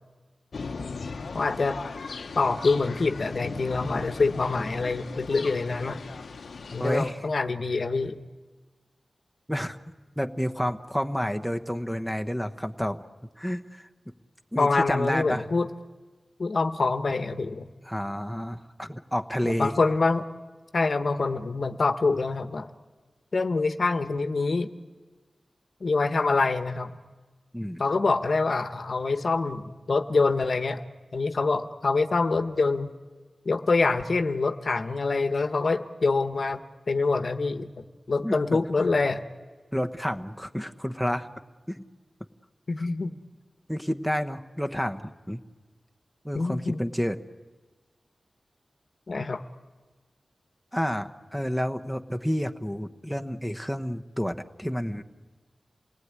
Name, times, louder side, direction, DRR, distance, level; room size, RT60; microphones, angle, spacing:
sound 1, 0.5-7.1, left 4 dB, 80° left, 0.9 m, -38 dB
voice 1, 1.3-1.8 2.3-6.0 6.7-8.2 14.6-15.7 16.4-17.7 19.4-20.3 20.7-22.7 23.3-24.7 25.8-27.0 27.8-30.8 31.1-32.9 33.4-37.7 38.1-39.2 42.7-43.2 46.3-46.8 49.1-49.4, left 3 dB, 60° left, 10 dB, 1.1 m, -25 dB
voice 2, 6.8-7.2 9.5-9.8 10.2-13.1 13.4-13.9 14.5-15.4 17.8-19.7 27.5-27.8 38.2-38.4 39.7-41.3 41.7-41.8 43.7-45.4 46.2-47.2 50.7-55.0, equal, ahead, 6 dB, 1.1 m, -30 dB
28.5 x 19.5 x 9.7 m, 1.3 s
wide cardioid pair, 105°, 0 cm